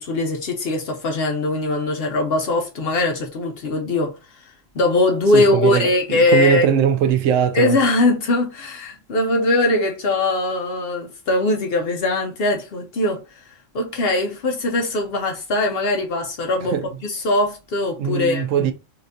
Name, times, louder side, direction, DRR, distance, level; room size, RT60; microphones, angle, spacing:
voice 1, 0.0-4.2 4.7-6.7 7.5-16.8 17.0-18.7, left 2 dB, 60° left, 0.8 m, -21 dB
voice 2, 5.3-7.8 16.6-16.9 18.0-18.7, right 8 dB, 80° right, 0.9 m, -20 dB
4.2 x 2.4 x 2.6 m
omnidirectional pair, 1.3 m